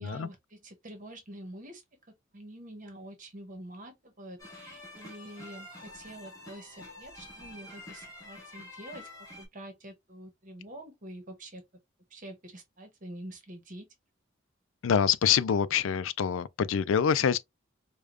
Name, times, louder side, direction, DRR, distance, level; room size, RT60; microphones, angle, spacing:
voice 1, 0.0-1.8 2.3-11.6 12.1-13.9, right 1 dB, 40° right, 1.0 m, -46 dB
sound 1, 4.4-9.5, left 2 dB, 20° left, 1.4 m, -47 dB
voice 2, 14.8-17.4, left 7 dB, 90° left, 0.4 m, -25 dB
4.9 x 2.3 x 2.4 m
head